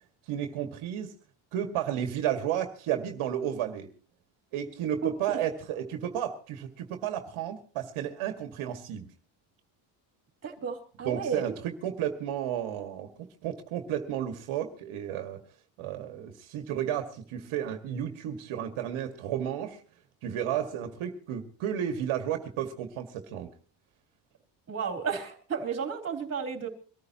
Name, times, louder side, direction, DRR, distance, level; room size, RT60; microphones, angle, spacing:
voice 1, 0.3-1.2 1.5-3.9 4.5-9.1 11.0-13.1 13.4-15.4 15.8-19.8 20.2-23.5, right 10 dB, 75° right, 5 dB, 2.1 m, -32 dB
voice 2, 5.0-5.4 10.4-11.5 24.7-26.7, right 6 dB, 30° right, 3 dB, 3.7 m, -33 dB
24.5 x 14.0 x 3.0 m, 0.38 s
cardioid pair, 145°, 50 cm